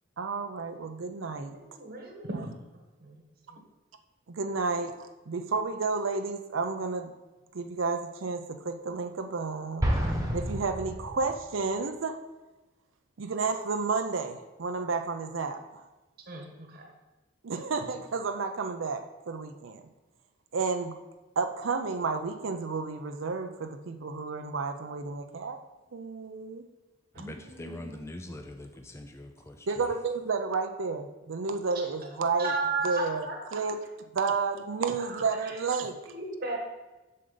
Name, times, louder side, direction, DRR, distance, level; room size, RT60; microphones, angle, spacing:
voice 1, 0.2-1.6 2.3-2.5 4.3-7.1 7.5-9.8 10.3-12.2 13.2-15.8 17.4-19.8 20.5-20.9 21.4-25.6 25.9-26.6 29.7-32.5 32.8-33.3 33.5-33.8 34.1-36.0, right 4 dB, 75° right, 6 dB, 0.6 m, -31 dB
voice 2, 1.5-2.3 3.0-3.2 3.5-3.6 16.3-16.9 27.1-28.0 32.4-33.6 35.0-35.6 36.1-36.6, right 3 dB, 50° right, 0 dB, 1.2 m, -35 dB
Explosion, 9.8-11.6, equal, 15° right, 1.1 m, -29 dB
voice 3, 27.1-29.7, left 1 dB, 15° left, 5 dB, 0.4 m, -43 dB
7.6 x 6.5 x 3.9 m, 1.1 s
head